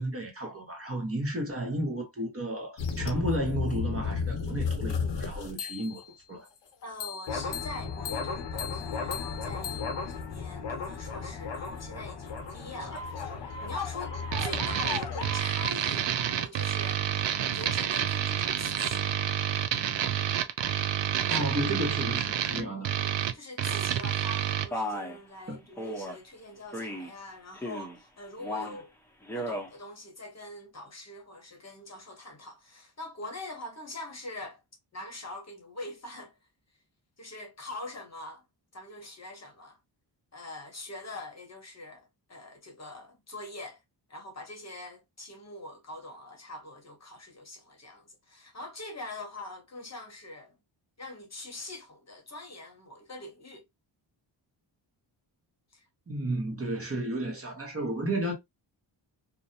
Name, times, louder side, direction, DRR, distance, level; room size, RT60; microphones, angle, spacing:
voice 1, 0.0-6.0 6.3-6.5 21.3-22.9 25.5-25.6 56.1-58.3, right 1 dB, 30° right, 1.0 m, -32 dB
sound 1, 2.8-6.1 7.0-15.4, left 5 dB, 65° left, 0.8 m, -34 dB
voice 2, 6.8-17.0 17.3-19.2 21.2-21.5 22.5-28.9 29.3-34.6 34.9-36.4 37.2-38.4 38.7-39.8 40.3-43.8 44.1-50.5 51.0-53.6 55.7-55.8, left 2 dB, 35° left, 0.9 m, -43 dB
sound 2, 14.3-24.7, right 10 dB, 65° right, 0.5 m, -29 dB
Male speech man speaking, 24.7-25.2 25.8-26.2 26.7-27.1 27.5-28.0 28.4-28.8 29.2-29.7, left 1 dB, 5° left, 0.7 m, -35 dB
2.5 x 2.1 x 2.6 m
cardioid pair, 85°, 47 cm